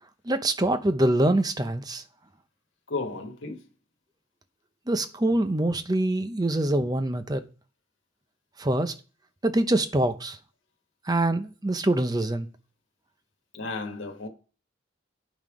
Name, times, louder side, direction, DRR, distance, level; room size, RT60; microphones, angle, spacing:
voice 1, 0.2-2.0 4.9-7.4 8.6-8.9 9.4-10.4 11.1-12.5, right 1 dB, 20° right, 0.7 m, -24 dB
voice 2, 2.9-3.7 13.5-14.3, left 3 dB, 80° left, 1.4 m, -33 dB
9.4 x 5.6 x 4.9 m
head